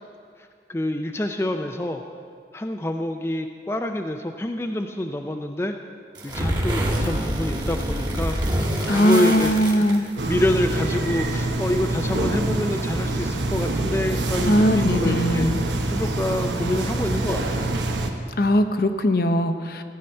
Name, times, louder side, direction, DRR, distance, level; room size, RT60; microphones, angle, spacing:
voice 1, 0.7-2.0 2.5-5.8 6.2-8.4 8.9-15.5 15.9-17.8, left 1 dB, 15° left, 4 dB, 0.4 m, -27 dB
sound 1, 6.2-10.4, right 1 dB, 25° right, 1.4 m, -26 dB
voice 2, 8.9-10.1 14.5-15.6 18.4-19.8, equal, 55° left, 8 dB, 0.7 m, -20 dB
sound 2, 10.2-18.1, right 2 dB, 85° right, 1.2 m, -25 dB
15.5 x 5.7 x 8.8 m, 2.3 s
head